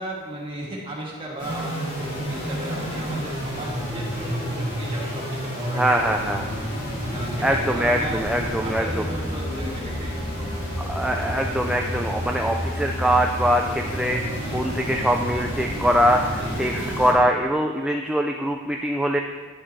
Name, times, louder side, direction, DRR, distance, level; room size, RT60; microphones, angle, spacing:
voice 1, 0.0-5.8 6.1-6.7 7.1-8.2 8.6-10.8 14.3-14.6 16.4-16.6, right 1 dB, 25° right, -4 dB, 1.8 m, -35 dB
sound 1, 1.4-17.1, equal, 45° left, 2.5 m, -29 dB
voice 2, 5.8-6.5 7.4-9.0 10.8-19.2, equal, 5° right, 2 dB, 0.3 m, -23 dB
9.9 x 6.0 x 4.1 m, 1.4 s
head